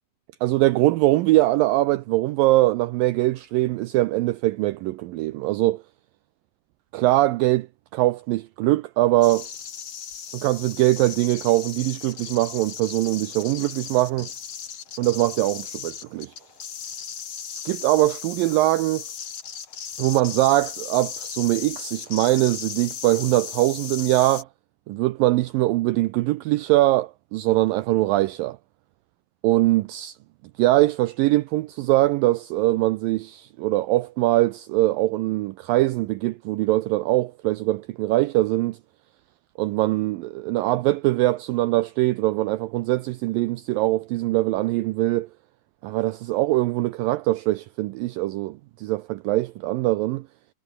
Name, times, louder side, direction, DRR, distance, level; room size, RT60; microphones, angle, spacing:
voice 1, 0.4-5.8 6.9-7.7 7.9-9.5 10.3-14.3 15.0-16.3 17.5-19.0 20.0-24.5 24.9-28.6 29.4-30.2 30.6-38.8 39.6-45.3 45.8-50.3, right 18 dB, 90° right, 2.0 m, -22 dB
sound 1, 9.2-24.4, left 8 dB, 45° left, 2.7 m, -37 dB
omnidirectional pair, 4.7 m